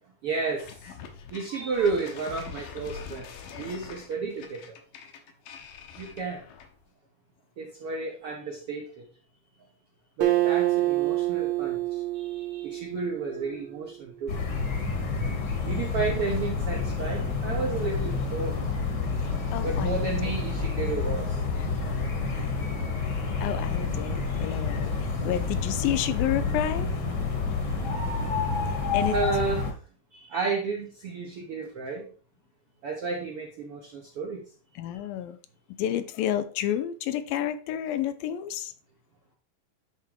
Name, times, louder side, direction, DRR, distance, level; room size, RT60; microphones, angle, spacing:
voice 1, 0.2-0.7 1.3-3.3 3.5-4.7 6.0-6.4 7.6-9.0 10.2-11.8 12.1-14.3 15.6-18.6 19.6-21.3 29.1-29.7 30.1-32.0 32.8-34.4, right 4 dB, 70° right, -1 dB, 1.4 m, -32 dB
sound 1, 0.6-6.8, left 7 dB, 70° left, 2.6 m, -44 dB
Acoustic guitar, 10.2-13.8, right 16 dB, 85° right, 2.9 m, -27 dB
sound 2, 14.3-29.7, left 4 dB, 45° left, 1.5 m, -29 dB
voice 2, 19.2-20.0 21.6-21.7 23.4-26.9 28.7-29.2 34.8-35.4 35.8-38.7, left 11 dB, 90° left, 10 dB, 2.4 m, -30 dB
10.0 x 3.6 x 4.6 m, 0.39 s
omnidirectional pair, 4.1 m